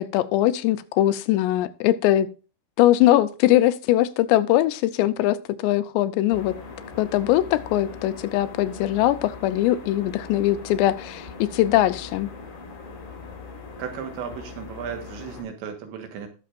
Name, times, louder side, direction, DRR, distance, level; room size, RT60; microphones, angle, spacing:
voice 1, 0.0-2.3 2.8-6.6 7.0-12.3, left 14 dB, 85° left, 12 dB, 2.8 m, -21 dB
sound 1, 6.3-15.4, left 4 dB, 60° left, 5.3 m, -40 dB
voice 2, 13.8-16.3, right 7 dB, 80° right, 5 dB, 3.8 m, -35 dB
19.5 x 6.5 x 2.5 m, 0.35 s
omnidirectional pair, 5.1 m